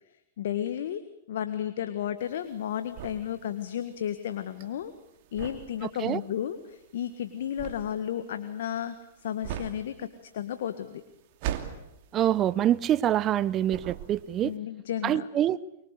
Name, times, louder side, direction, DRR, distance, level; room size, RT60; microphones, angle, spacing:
voice 1, 0.4-1.0 1.3-4.9 5.3-8.9 9.2-10.1 10.3-11.0 14.4-15.3, left 10 dB, 70° left, 10 dB, 1.6 m, -33 dB
sound 1, 2.2-13.4 13.7-14.5, right 11 dB, 50° right, 2.7 m, -40 dB
voice 2, 12.1-14.5 15.0-15.6, right 11 dB, 30° right, 19 dB, 0.9 m, -25 dB
24.5 x 23.5 x 8.3 m, 0.84 s
hypercardioid pair, 120°, 0 cm